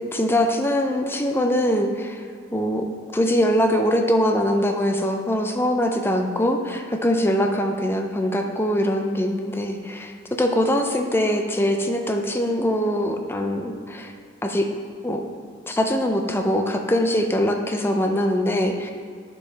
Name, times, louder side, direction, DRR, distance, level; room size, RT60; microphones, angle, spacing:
voice 1, 0.1-2.2 2.5-14.1 14.4-14.7 15.0-15.2 15.7-18.9, equal, 10° left, 4 dB, 0.5 m, -22 dB
12.0 x 5.3 x 3.4 m, 2.1 s
head